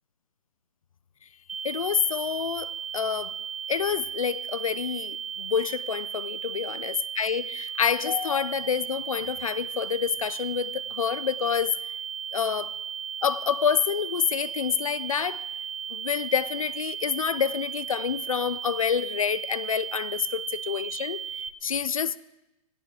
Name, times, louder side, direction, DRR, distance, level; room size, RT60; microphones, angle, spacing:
sound 1, 1.5-21.5, right 8 dB, 70° right, 0.8 m, -36 dB
voice 1, 1.6-3.3 3.7-11.8 12.3-12.7 13.2-15.4 15.9-22.2, left 7 dB, 65° left, 0.7 m, -28 dB
23.0 x 17.0 x 3.4 m
figure-of-eight pair, 115°, 19 cm